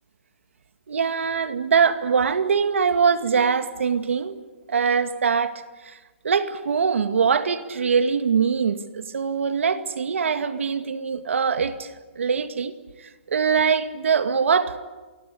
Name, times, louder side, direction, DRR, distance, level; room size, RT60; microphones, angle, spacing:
voice 1, 0.9-4.3 4.7-6.0 6.2-11.9 12.2-12.7 13.3-14.8, right 6 dB, 90° right, 2.2 m, -22 dB
27.5 x 20.0 x 10.0 m
hypercardioid pair, 165°, 7 cm